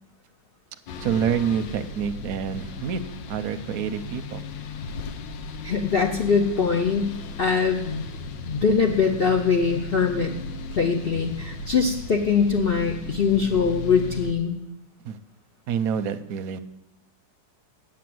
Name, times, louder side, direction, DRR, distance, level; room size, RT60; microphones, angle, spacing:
sound 1, 0.9-14.3, left 3 dB, 85° left, 1.5 m, -36 dB
voice 1, 1.0-3.0 3.3-4.4 15.0-15.2 15.7-16.6, right 7 dB, 65° right, 10 dB, 1.0 m, -27 dB
voice 2, 5.6-8.0 8.4-10.3 10.7-14.6, left 5 dB, 70° left, 1 dB, 0.5 m, -22 dB
8.6 x 7.1 x 7.7 m, 0.89 s
omnidirectional pair, 1.9 m